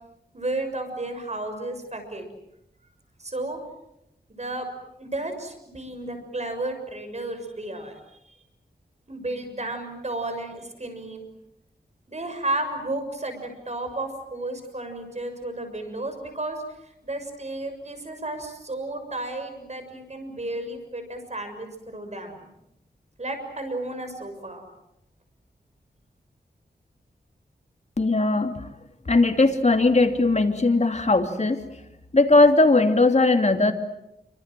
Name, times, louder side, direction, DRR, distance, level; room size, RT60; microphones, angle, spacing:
voice 1, 0.3-2.2 3.2-3.6 4.3-4.7 5.0-7.9 9.1-11.2 12.1-16.6 17.0-22.4 23.2-24.6, right 2 dB, 40° right, 7 dB, 6.7 m, -32 dB
voice 2, 28.0-28.5 29.1-31.6 32.1-33.7, left 2 dB, 40° left, 5 dB, 3.0 m, -19 dB
28.0 x 25.5 x 7.8 m, 0.85 s
wide cardioid pair, 70°, 17 cm